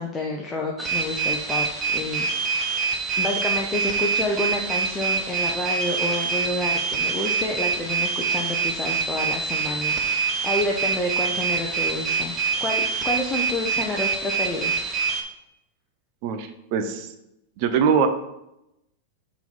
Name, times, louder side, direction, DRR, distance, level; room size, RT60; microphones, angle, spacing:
voice 1, 0.0-2.8 3.2-12.3 12.6-14.9, left 1 dB, 20° left, -1 dB, 0.8 m, -29 dB
sound 1, 0.8-15.2, right 5 dB, 25° right, 1.0 m, -25 dB
voice 2, 16.2-17.1 17.6-18.1, right 7 dB, 55° right, 8 dB, 0.7 m, -22 dB
4.6 x 4.1 x 5.3 m, 0.86 s
hypercardioid pair, 110°, 0 cm